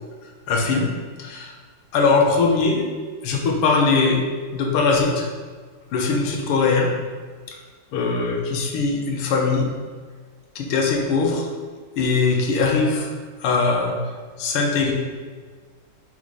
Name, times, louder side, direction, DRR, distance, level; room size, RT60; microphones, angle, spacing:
voice 1, 0.5-0.9 1.2-1.5 1.9-2.8 3.2-4.2 4.5-5.3 5.9-6.9 7.5-7.6 7.9-9.7 10.6-11.5 12.0-13.1 13.4-14.0 14.4-14.9, left 4 dB, 90° left, 1 dB, 1.8 m, -21 dB
5.2 x 4.0 x 4.7 m, 1.5 s
omnidirectional pair, 2.4 m